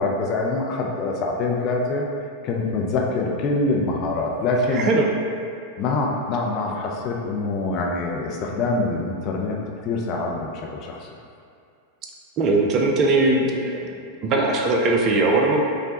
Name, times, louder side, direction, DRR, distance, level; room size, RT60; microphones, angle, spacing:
voice 1, 0.0-2.0 2.4-4.9 5.8-9.6 9.8-11.1, left 3 dB, 35° left, -1 dB, 0.5 m, -25 dB
voice 2, 4.7-5.1 12.4-13.9 14.2-15.6, right 2 dB, 35° right, 0 dB, 0.4 m, -20 dB
5.1 x 2.1 x 2.8 m, 2.4 s
figure-of-eight pair, 90°, 0 cm